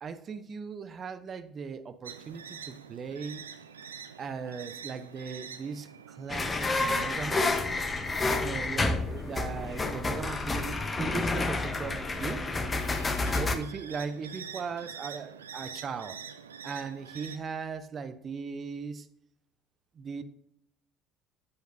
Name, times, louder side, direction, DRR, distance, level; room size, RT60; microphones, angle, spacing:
voice 1, 0.0-3.4 4.2-7.6 8.4-12.5 13.3-16.2 16.6-19.1 19.9-20.2, right 5 dB, 40° right, 11 dB, 0.7 m, -38 dB
sound 1, 2.0-17.4, right 7 dB, 90° right, 0.5 m, -47 dB
sound 2, 6.3-13.6, left 3 dB, 25° left, 1.0 m, -29 dB
9.1 x 7.1 x 2.7 m, 0.74 s
hypercardioid pair, 65°, 0 cm